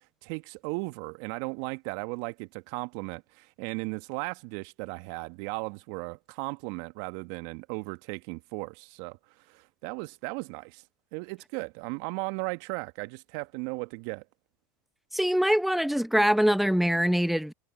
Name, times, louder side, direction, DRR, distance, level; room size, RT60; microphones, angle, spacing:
voice 1, 0.2-9.2 9.5-10.8 11.1-14.2, right 28 dB, 60° right, 1.8 m, -36 dB
voice 2, 15.1-17.5, equal, ahead, 0.9 m, -23 dB
hypercardioid pair, 85°, 12 cm